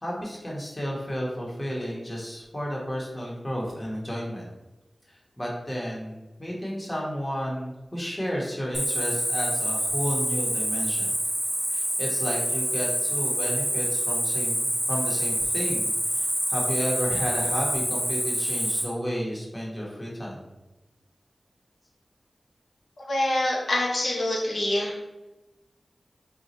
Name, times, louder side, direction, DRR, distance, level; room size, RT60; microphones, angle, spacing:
voice 1, 0.0-4.5 5.1-11.1 11.7-20.4, equal, 20° left, -4 dB, 1.0 m, -32 dB
Cricket, 8.7-18.8, equal, 10° right, 0.9 m, -27 dB
voice 2, 23.1-24.9, left 1 dB, 75° left, -4 dB, 0.7 m, -25 dB
2.7 x 2.3 x 4.1 m, 1.0 s
cardioid pair, 50°, 0 cm